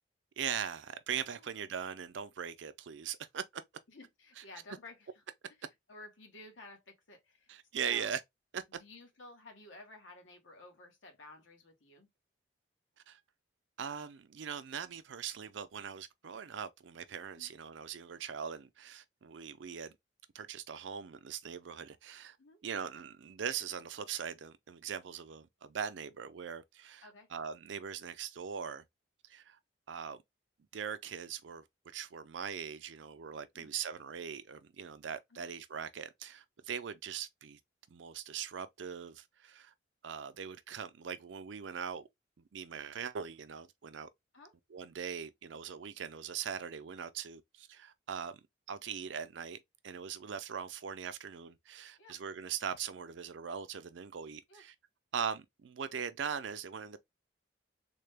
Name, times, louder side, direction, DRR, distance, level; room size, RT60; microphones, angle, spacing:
voice 1, 0.4-3.6 7.5-8.2 8.5-8.6 13.1-13.2 13.8-20.0 20.3-22.4 22.6-28.8 29.3-29.6 29.9-30.2 30.7-37.6 37.9-39.7 40.0-42.1 42.5-44.1 44.7-48.4 48.7-54.7 55.1-57.0, right 7 dB, 75° right, 0.4 m, -41 dB
voice 2, 3.9-5.2 5.6-7.5 7.8-8.2 8.7-12.1 17.4-17.5 22.4-22.6 27.0-27.3 33.5-33.8 35.3-35.5 44.3-44.5 52.0-52.2 54.5-54.6, left 2 dB, 85° left, 1.3 m, -54 dB
3.7 x 2.2 x 3.3 m
head